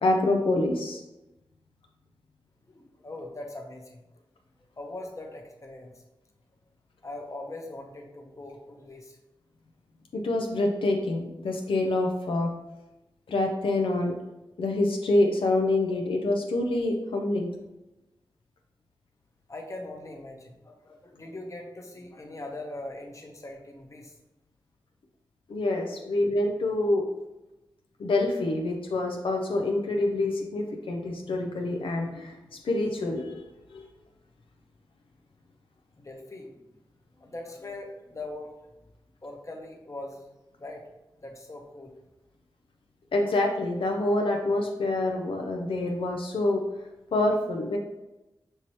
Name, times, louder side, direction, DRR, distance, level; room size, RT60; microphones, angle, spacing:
voice 1, 0.0-1.0 10.1-12.5 13.3-14.1 14.6-17.5 25.5-27.0 28.0-32.4 32.6-33.4 33.7-33.9 43.1-46.6 47.1-47.8, left 2 dB, 85° left, 2 dB, 0.5 m, -26 dB
voice 2, 2.7-4.1 4.8-6.0 7.0-9.2 19.5-24.2 36.0-36.6 37.1-38.5 39.2-40.2 40.6-40.9 41.2-41.9, left 2 dB, 35° left, 1 dB, 0.9 m, -41 dB
5.5 x 2.9 x 3.1 m, 0.98 s
cardioid pair, 60°, 9 cm